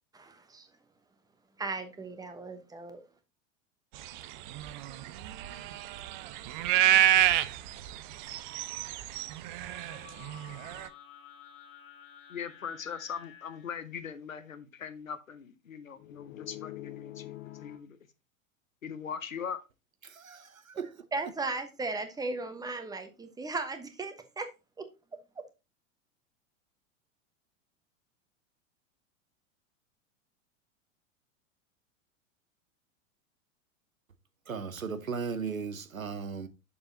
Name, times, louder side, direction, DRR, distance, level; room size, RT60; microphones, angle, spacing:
voice 1, 0.1-0.7 1.6-3.0 20.7-20.9 21.1-24.5 24.8-24.9 25.4-25.5, right 3 dB, 10° right, 1.1 m, -36 dB
sound 1, 4.1-10.9, right 13 dB, 40° right, 0.5 m, -28 dB
sound 2, 9.6-13.9 15.9-17.8, left 13 dB, 50° left, 1.3 m, -48 dB
voice 2, 12.3-18.0 18.8-19.6, left 7 dB, 80° left, 0.9 m, -40 dB
voice 3, 20.0-21.0 34.5-36.5, right 5 dB, 85° right, 0.8 m, -36 dB
6.9 x 6.8 x 2.8 m
figure-of-eight pair, 90°, 40 cm